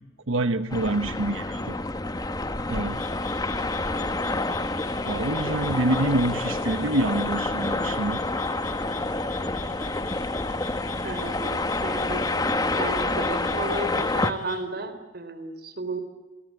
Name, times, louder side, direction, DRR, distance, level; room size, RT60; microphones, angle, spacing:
voice 1, 0.3-1.7 2.7-3.0 5.1-8.2, right 2 dB, 80° right, 9 dB, 1.2 m, -26 dB
sound 1, 0.7-14.3, left 2 dB, 20° left, 1.2 m, -28 dB
Frog, 2.9-14.6, left 7 dB, 40° left, 5.0 m, -43 dB
voice 2, 11.0-12.3 12.8-16.0, right 2 dB, 50° right, 11 dB, 3.6 m, -33 dB
29.0 x 22.5 x 8.4 m, 1.2 s
head